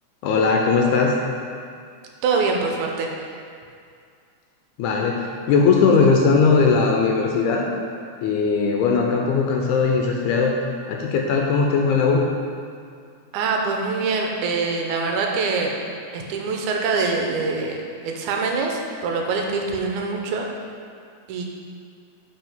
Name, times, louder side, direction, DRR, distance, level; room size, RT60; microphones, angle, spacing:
voice 1, 0.2-1.2 4.8-7.6 8.2-10.5 10.9-12.3, left 5 dB, 85° left, 0 dB, 2.1 m, -19 dB
voice 2, 2.2-3.1 13.3-15.7 16.1-20.5 21.3-21.4, right 4 dB, 80° right, 1 dB, 2.2 m, -24 dB
5.6 x 5.1 x 5.9 m, 2.3 s
omnidirectional pair, 3.5 m